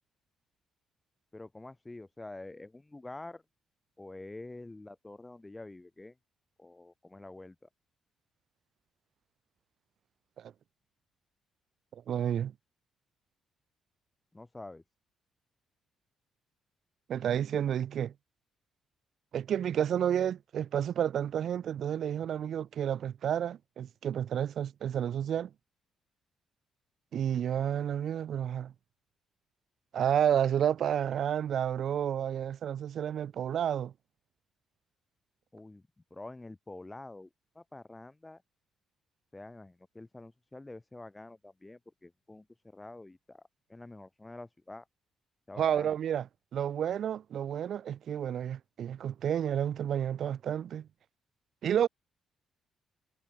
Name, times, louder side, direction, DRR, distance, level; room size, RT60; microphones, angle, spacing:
voice 1, 1.3-3.4 4.0-6.2 6.6-7.6 14.3-14.8 35.5-35.8 36.1-37.3 37.5-38.4 39.3-43.4 43.7-44.9 45.5-45.9, left 2 dB, 15° left, 5.8 m, -47 dB
voice 2, 11.9-12.5 17.1-18.1 19.3-25.5 27.1-28.7 29.9-33.9 45.6-46.3 46.5-50.9 51.6-51.9, right 9 dB, 65° right, 2.4 m, -30 dB
cardioid pair, 90°, 0 cm